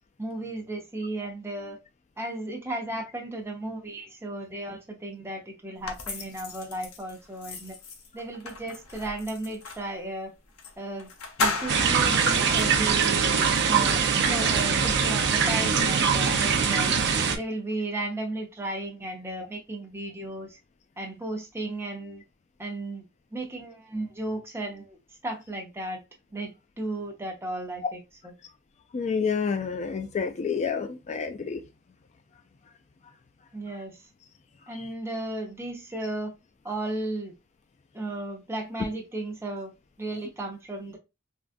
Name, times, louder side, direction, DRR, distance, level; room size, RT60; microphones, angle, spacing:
voice 1, 0.2-1.8 2.2-7.7 8.1-10.3 10.8-11.1 11.4-16.9 17.4-20.6 21.0-22.2 22.6-23.0 23.3-25.0 25.2-26.0 26.3-28.3 33.5-34.0 34.7-36.3 36.6-37.3 37.9-39.7 40.0-41.0, right 2 dB, 10° right, 0.7 m, -35 dB
sound 1, 5.8-9.9 10.6-10.7 11.0-13.0, left 3 dB, 75° left, 0.7 m, -35 dB
sound 2, 11.7-17.4, right 6 dB, 55° right, 0.5 m, -23 dB
voice 2, 28.9-31.6, left 5 dB, 30° left, 0.3 m, -29 dB
3.5 x 2.4 x 2.5 m
head